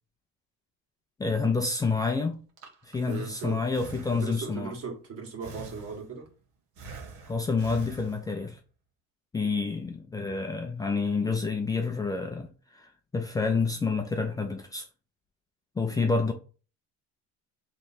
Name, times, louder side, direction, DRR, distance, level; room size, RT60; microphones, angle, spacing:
voice 1, 1.2-2.4 2.9-4.7 7.3-8.6 9.3-14.8 15.8-16.3, left 4 dB, 10° left, 0.5 m, -28 dB
Breathing, 2.3-4.6 5.4-6.3 6.8-8.6, right 4 dB, 80° right, 1.4 m, -46 dB
voice 2, 3.0-3.6 4.1-6.3, right 5 dB, 50° right, 1.8 m, -38 dB
3.4 x 3.2 x 4.3 m
cardioid pair, 135°, 29 cm